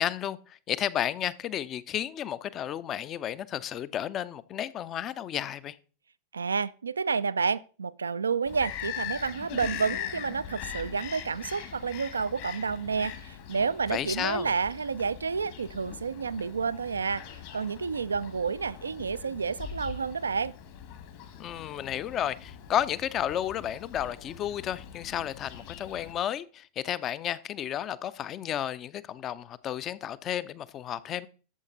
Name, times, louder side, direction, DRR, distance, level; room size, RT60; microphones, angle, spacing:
voice 1, 0.0-5.8 13.9-14.5 21.4-31.3, left 10 dB, 30° left, 0.5 m, -32 dB
voice 2, 6.3-20.5, right 5 dB, 75° right, 0.4 m, -30 dB
Bird vocalization bird call bird song, 8.4-26.1, left 9 dB, 50° left, 1.7 m, -42 dB
12.0 x 7.2 x 3.9 m
figure-of-eight pair, 90°, 0 cm